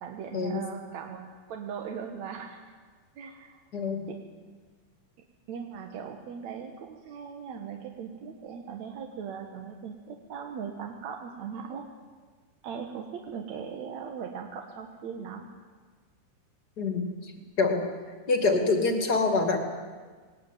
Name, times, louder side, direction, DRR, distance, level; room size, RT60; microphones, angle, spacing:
voice 1, 0.0-2.7 3.2-3.6 4.1-4.2 5.5-11.9 12.6-15.5, right 7 dB, 60° right, 3 dB, 2.1 m, -39 dB
voice 2, 3.7-4.1 16.8-17.3 17.6-17.8 18.3-19.6, left 3 dB, 30° left, 4 dB, 2.1 m, -25 dB
20.5 x 19.0 x 9.1 m, 1.5 s
omnidirectional pair, 4.5 m